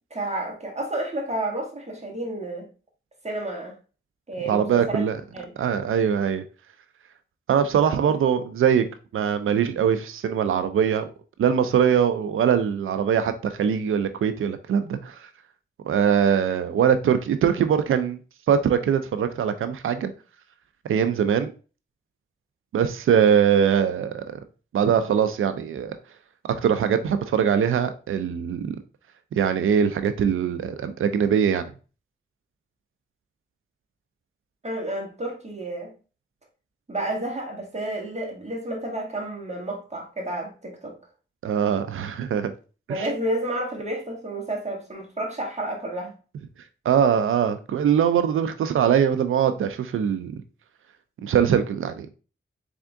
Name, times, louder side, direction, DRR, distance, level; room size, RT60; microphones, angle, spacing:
voice 1, 0.1-2.7 3.2-3.7 4.3-5.0 5.3-5.5 8.1-8.2 34.6-35.9 36.9-40.9 42.9-46.1, right 1 dB, 35° right, 1.7 m, -30 dB
voice 2, 4.5-5.2 5.6-6.4 7.5-8.8 9.1-11.1 11.4-15.2 15.9-18.2 18.5-20.1 20.8-21.5 22.7-24.4 24.7-25.9 26.5-28.8 29.3-31.7 41.4-42.5 42.9-43.1 46.9-50.3 51.2-52.1, right 8 dB, 90° right, 0.4 m, -22 dB
3.6 x 3.5 x 3.5 m
cardioid pair, 50°, 20 cm